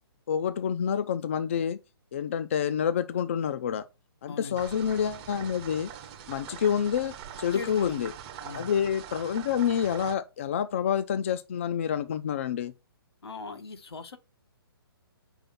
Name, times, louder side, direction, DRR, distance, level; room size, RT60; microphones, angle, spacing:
voice 1, 0.3-1.8 2.1-3.8 4.2-5.9 6.3-8.1 8.5-12.7, left 8 dB, 30° left, 0.4 m, -28 dB
voice 2, 4.3-4.6 7.5-8.0 8.4-8.7 13.2-14.2, left 4 dB, 85° left, 1.4 m, -39 dB
sound 1, 4.6-10.1, right 9 dB, 20° right, 0.6 m, -43 dB
5.4 x 4.5 x 5.6 m
hypercardioid pair, 170°, 13 cm